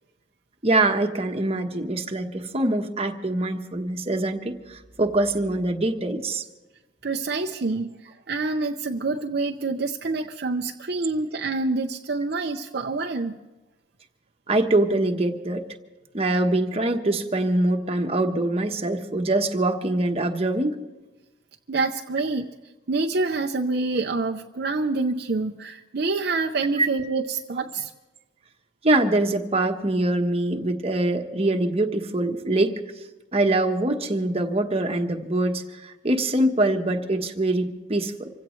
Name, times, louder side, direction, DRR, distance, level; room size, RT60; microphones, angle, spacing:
voice 1, 0.6-6.4 14.5-15.6 16.1-20.8 26.8-26.9 28.8-32.8 33.3-38.3, right 2 dB, 30° right, 4 dB, 1.1 m, -24 dB
voice 2, 7.0-7.9 8.3-13.4 21.7-22.5 22.9-27.9, right 3 dB, 55° right, 3 dB, 0.6 m, -26 dB
26.5 x 16.0 x 3.2 m, 1.1 s
head